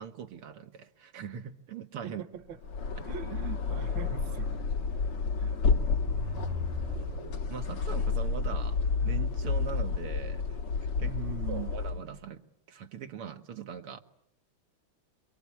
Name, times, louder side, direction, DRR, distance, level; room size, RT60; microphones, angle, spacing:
voice 1, 0.0-2.2 7.3-10.6 11.0-11.1 11.5-12.4 12.7-14.0, right 7 dB, 80° right, 2.3 m, -41 dB
voice 2, 2.0-2.6 3.0-4.6 5.4-6.0 11.0-11.7, right 7 dB, 60° right, 1.9 m, -42 dB
sound 1, 2.5-12.1, left 4 dB, 90° left, 2.6 m, -30 dB
sound 2, 6.0-7.9, left 2 dB, 30° right, 0.7 m, -39 dB
26.5 x 23.5 x 8.6 m
omnidirectional pair, 2.4 m